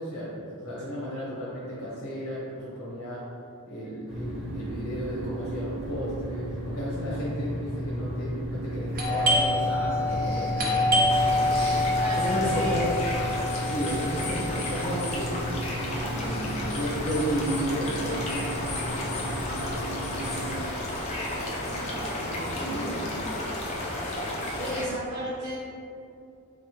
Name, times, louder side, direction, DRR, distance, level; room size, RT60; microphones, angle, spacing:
voice 1, 0.0-3.2 3.7-11.4 12.1-13.0 13.6-15.4 15.8-18.5 19.0-19.2 19.5-19.7 20.2-20.6 21.4-23.3, equal, 60° left, -8 dB, 0.8 m, -34 dB
sound 1, 4.1-20.6, equal, ahead, 0.9 m, -34 dB
Doorbell, 8.9-18.3 18.6-18.7 19.3-19.6 20.0-21.4, left 1 dB, 40° right, 0.6 m, -27 dB
voice 2, 10.1-10.6 11.1-11.2 11.5-12.8 24.6-25.5, right 1 dB, 75° right, -8 dB, 0.8 m, -35 dB
sound 2, 11.1-24.8, left 1 dB, 30° left, 0.4 m, -33 dB
3.8 x 3.3 x 2.9 m, 2.6 s
head